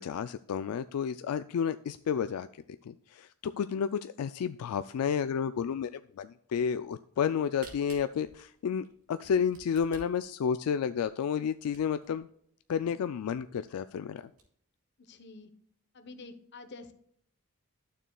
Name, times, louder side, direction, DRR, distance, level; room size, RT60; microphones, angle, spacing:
voice 1, 0.0-2.5 2.9-12.3 12.7-14.3, left 7 dB, 80° left, 12 dB, 0.3 m, -31 dB
Camera, 7.2-12.2 12.7-12.8 13.0-13.1 13.6-13.7 14.0-14.4, right 3 dB, 75° right, 2.3 m, -54 dB
voice 2, 15.0-15.5 15.9-16.9, left 3 dB, 50° left, 9 dB, 0.9 m, -48 dB
12.0 x 6.7 x 2.3 m, 0.67 s
head